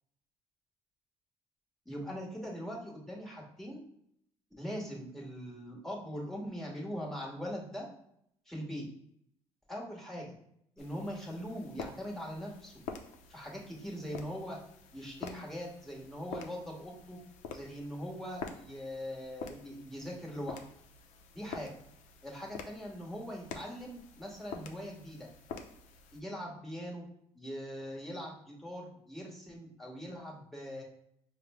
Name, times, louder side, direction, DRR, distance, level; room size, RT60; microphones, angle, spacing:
voice 1, 1.8-3.8 4.6-7.9 8.5-8.9 9.7-10.3 10.8-12.7 13.3-14.6 14.9-17.2 17.5-20.6 21.3-21.7 22.2-25.3 26.1-27.0 27.3-30.8, equal, ahead, -3 dB, 1.1 m, -41 dB
sound 1, 10.8-26.2, left 5 dB, 75° left, 0.5 m, -48 dB
5.0 x 2.1 x 3.4 m, 0.71 s
cardioid pair, 105°, 12 cm